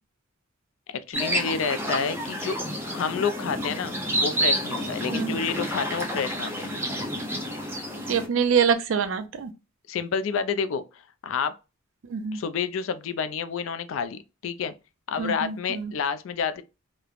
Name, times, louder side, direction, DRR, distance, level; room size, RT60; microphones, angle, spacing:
voice 1, 0.9-2.6 2.9-3.9 4.2-6.8 9.9-11.6 12.3-14.7 15.1-16.6, left 6 dB, 65° left, 0.3 m, -29 dB
sound 1, 1.1-8.3, equal, 10° right, 0.6 m, -29 dB
voice 2, 8.1-9.5 12.1-12.4 15.2-15.9, right 6 dB, 65° right, 0.4 m, -25 dB
3.0 x 2.0 x 2.3 m
head